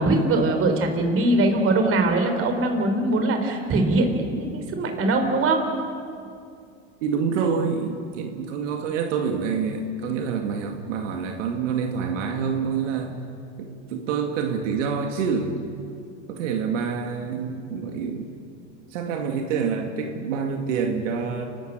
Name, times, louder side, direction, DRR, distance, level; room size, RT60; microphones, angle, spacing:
voice 1, 0.0-5.6, right 2 dB, 35° right, 5 dB, 4.0 m, -22 dB
voice 2, 7.0-13.2 13.6-15.7 16.3-18.3 18.9-21.5, right 6 dB, 80° right, 3 dB, 2.3 m, -27 dB
29.0 x 13.0 x 9.0 m, 2.4 s
supercardioid pair, 120°, 36 cm